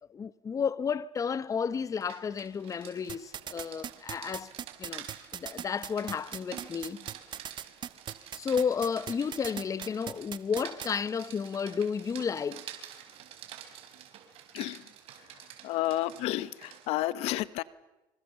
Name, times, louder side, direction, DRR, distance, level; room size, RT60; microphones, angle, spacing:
voice 1, 0.1-4.5 4.8-5.1 5.3-7.1 8.3-12.7, left 6 dB, 35° left, 0.9 m, -32 dB
Rain, 1.8-16.9, right 10 dB, 70° right, 4.4 m, -49 dB
sound 1, 3.1-10.9, right 9 dB, 50° right, 1.3 m, -38 dB
voice 2, 15.6-17.6, left 15 dB, 80° left, 0.9 m, -31 dB
26.0 x 26.0 x 6.9 m
cardioid pair, 100°, 10 cm